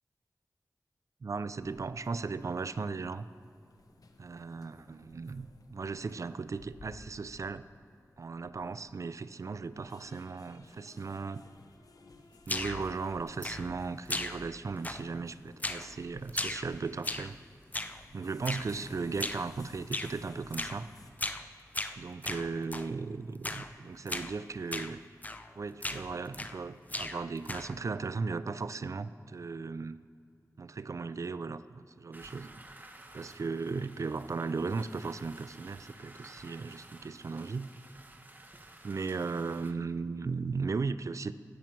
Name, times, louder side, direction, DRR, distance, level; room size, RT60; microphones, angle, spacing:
voice 1, 1.2-3.3 4.2-7.6 8.2-11.4 12.5-17.4 18.1-20.9 22.0-25.0 25.6-30.0 30.6-32.6 33.1-37.7 38.8-41.3, right 4 dB, 55° right, 14 dB, 0.4 m, -36 dB
sound 1, 1.6-16.9 17.2-21.1, left 3 dB, 70° left, 0.8 m, -57 dB
sound 2, 12.5-12.9 13.4-13.8 14.1-14.6 14.8-15.2 15.6-15.9 16.3-17.4 17.7-18.0 18.4-18.7 19.2-19.5 19.9-20.1 20.5-20.8 21.2-21.5 21.7-22.9 23.4-23.7 24.1-24.3 24.7-24.9 25.2-25.5 25.8-26.6 26.9-27.8, left 2 dB, 25° left, 0.5 m, -37 dB
sound 3, 32.1-39.7, right 2 dB, 30° right, 1.0 m, -53 dB
16.5 x 7.3 x 4.5 m, 2.3 s
wide cardioid pair, 55°, 6 cm